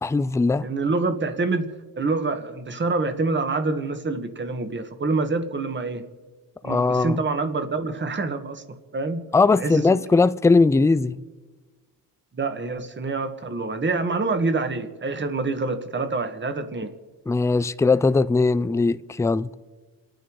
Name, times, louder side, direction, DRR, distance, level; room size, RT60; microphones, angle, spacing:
voice 1, 0.0-0.7 6.6-7.2 9.3-11.2 17.3-19.5, left 3 dB, 10° left, 0.4 m, -20 dB
voice 2, 0.6-6.0 6.6-8.6 8.9-9.2 9.5-10.0 12.3-16.9, right 3 dB, 30° right, 1.7 m, -26 dB
28.0 x 9.4 x 4.7 m
cardioid pair, 90°, 36 cm